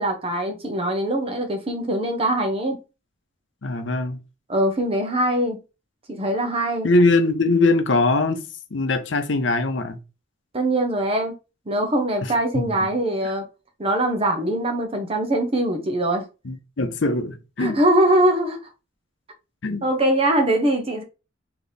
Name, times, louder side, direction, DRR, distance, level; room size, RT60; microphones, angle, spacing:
voice 1, 0.0-2.8 4.5-5.6 6.1-6.9 10.5-11.3 11.7-13.5 13.8-16.3 17.6-18.6 19.8-21.0, right 1 dB, 30° right, 0.9 m, -22 dB
voice 2, 3.6-4.2 6.8-8.4 8.7-10.0 12.5-12.7 16.4-17.8 19.6-19.8, left 2 dB, 75° left, 0.7 m, -21 dB
3.4 x 2.9 x 4.0 m
head